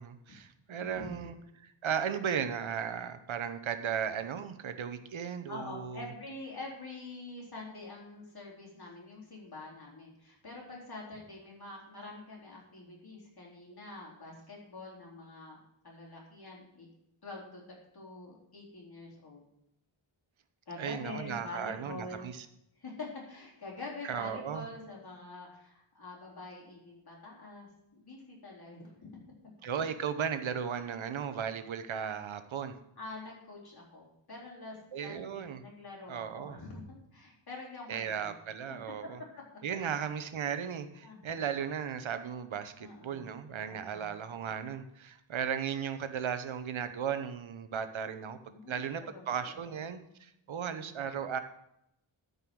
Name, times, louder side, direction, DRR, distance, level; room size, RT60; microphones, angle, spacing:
voice 1, 0.0-1.4 1.6-6.1 20.8-22.5 24.0-24.7 29.6-32.7 34.9-35.6 36.1-36.6 37.9-39.2 39.6-48.4 48.7-51.4, right 7 dB, 70° right, 10 dB, 1.0 m, -36 dB
voice 2, 0.7-1.1 5.5-15.6 15.8-16.9 17.2-19.4 20.7-22.3 22.8-29.2 33.0-38.3 39.8-40.0 41.0-41.4 42.8-43.2 43.7-44.1 48.4-49.6 50.5-51.0, left 2 dB, 50° left, -3 dB, 4.2 m, -46 dB
13.0 x 5.4 x 6.2 m, 0.80 s
wide cardioid pair, 150°, 49 cm